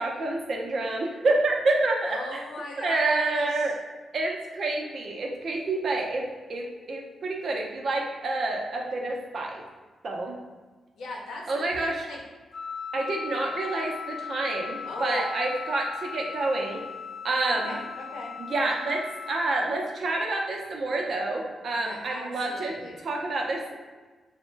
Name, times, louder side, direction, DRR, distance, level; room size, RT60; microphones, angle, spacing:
voice 1, 0.0-2.4 2.8-3.7 4.1-9.6 10.0-10.4 11.5-12.1 12.9-16.8 17.2-17.8 18.5-23.8, right 2 dB, 55° right, 0 dB, 0.5 m, -28 dB
voice 2, 2.0-3.7 11.0-12.2 12.9-13.1 14.8-15.2 17.6-18.3 21.8-23.0, left 2 dB, 90° left, -2 dB, 0.7 m, -38 dB
Wind instrument woodwind instrument, 12.5-19.4, left 6 dB, 40° left, 0.6 m, -38 dB
3.0 x 2.1 x 3.2 m, 1.3 s
cardioid pair, 120°, 0 cm